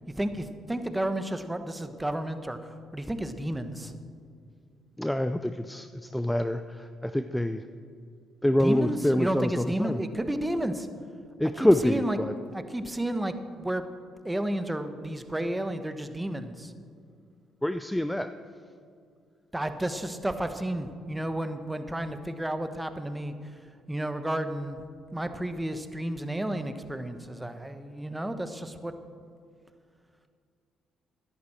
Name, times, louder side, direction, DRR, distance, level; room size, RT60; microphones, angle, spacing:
voice 1, 0.1-3.9 8.6-10.9 11.6-12.2 12.5-13.8 14.2-16.7 19.5-23.6 23.9-24.8 25.1-28.9, right 1 dB, 10° right, 9 dB, 1.0 m, -32 dB
voice 2, 5.0-7.6 8.4-10.0 11.4-12.3 17.6-18.3, left 1 dB, 5° left, 9 dB, 0.5 m, -26 dB
13.0 x 11.0 x 4.4 m, 2.2 s
supercardioid pair, 65°, 0 cm